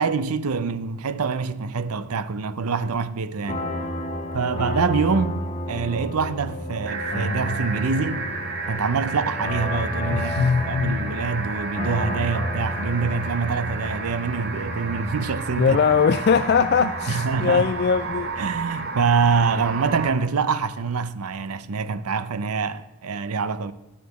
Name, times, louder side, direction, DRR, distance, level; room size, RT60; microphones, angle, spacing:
voice 1, 0.0-3.7 4.3-5.4 5.7-8.3 8.7-15.8 16.8-17.7 18.4-23.7, right 5 dB, 90° right, 0.6 m, -25 dB
sound 1, 3.5-20.0, left 1 dB, 30° left, 1.1 m, -32 dB
sound 2, 6.9-20.1, right 4 dB, 45° right, 1.3 m, -32 dB
voice 2, 10.1-11.2 15.6-18.3, left 6 dB, 45° left, 0.3 m, -21 dB
12.0 x 5.1 x 7.9 m
head